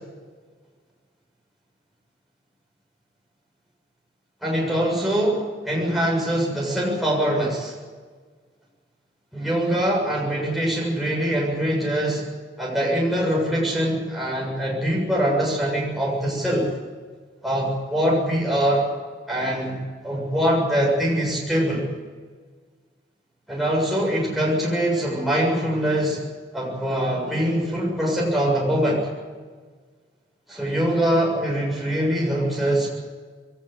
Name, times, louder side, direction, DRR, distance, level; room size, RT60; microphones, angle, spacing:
voice 1, 4.4-7.7 9.3-12.2 12.6-16.7 17.4-18.9 19.3-21.9 23.5-26.3 26.5-29.1 30.5-32.9, right 1 dB, ahead, -4 dB, 7.3 m, -23 dB
21.5 x 18.5 x 8.1 m, 1.5 s
head